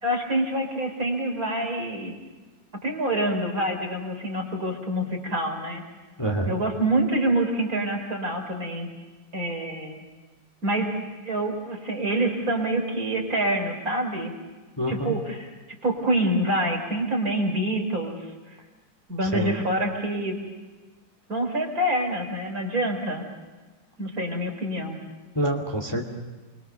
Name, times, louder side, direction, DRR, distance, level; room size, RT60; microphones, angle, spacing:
voice 1, 0.0-2.1 2.8-5.8 6.5-8.9 9.3-10.0 10.6-11.0 11.2-14.3 14.9-15.5 15.8-18.3 19.1-20.4 21.3-23.2 24.0-25.0, right 1 dB, 40° right, 2 dB, 4.4 m, -26 dB
voice 2, 6.2-6.5 14.8-15.1 19.3-19.6 25.3-26.0, right 1 dB, 10° left, 1 dB, 2.5 m, -26 dB
29.5 x 23.0 x 6.8 m, 1.3 s
omnidirectional pair, 2.3 m